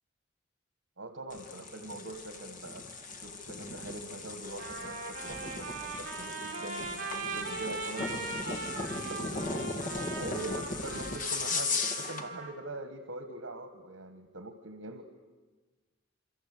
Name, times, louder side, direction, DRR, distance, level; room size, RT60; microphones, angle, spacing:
voice 1, 1.0-8.6 9.1-9.7 10.2-15.1, right 1 dB, 80° right, 8 dB, 1.7 m, -43 dB
sound 1, 1.3-12.3, left 3 dB, 40° left, 2.0 m, -37 dB
Trumpet, 4.6-12.5, right 4 dB, 45° right, 5.0 m, -40 dB
27.5 x 24.0 x 8.5 m, 1.3 s
head